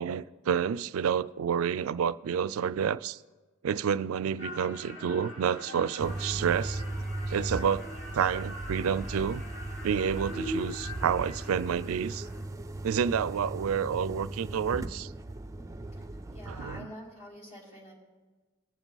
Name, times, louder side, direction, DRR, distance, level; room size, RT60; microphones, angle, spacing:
voice 1, 0.0-3.2 3.6-6.8 7.3-7.9 8.1-9.4 9.8-12.3 12.8-15.1 16.5-16.9, right 7 dB, 75° right, 0.4 m, -29 dB
sound 1, 4.4-12.4, left 1 dB, 60° left, 2.7 m, -42 dB
sound 2, 6.0-16.8, right 2 dB, 15° right, 0.4 m, -38 dB
voice 2, 16.3-17.9, equal, 35° left, 4.1 m, -46 dB
21.0 x 7.1 x 4.0 m
head